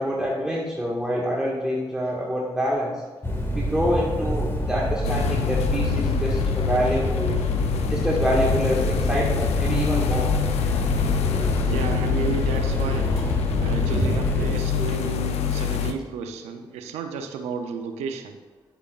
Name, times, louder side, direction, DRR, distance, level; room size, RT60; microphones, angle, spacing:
voice 1, 0.0-3.0 3.5-7.3 7.9-10.3 13.9-14.1 14.4-14.5, equal, 5° right, -5 dB, 1.8 m, -26 dB
sound 1, 3.2-14.6, equal, 20° left, 1.9 m, -27 dB
Multiple clothing dryers in a laundromat, 5.0-15.9, left 9 dB, 80° left, 0.6 m, -26 dB
voice 2, 11.6-18.4, right 5 dB, 90° right, 6 dB, 0.7 m, -32 dB
10.0 x 8.1 x 2.5 m, 1.3 s
supercardioid pair, 45°, 11 cm